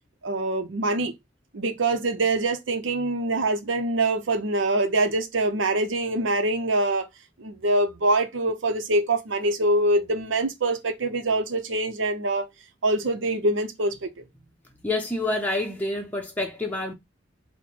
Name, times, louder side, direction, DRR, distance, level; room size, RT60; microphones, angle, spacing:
voice 1, 0.2-1.1 1.5-7.1 7.4-12.5 12.8-14.1, right 2 dB, 80° right, 0.7 m, -24 dB
voice 2, 14.8-16.9, left 2 dB, 10° left, 0.6 m, -27 dB
4.3 x 2.1 x 4.3 m
head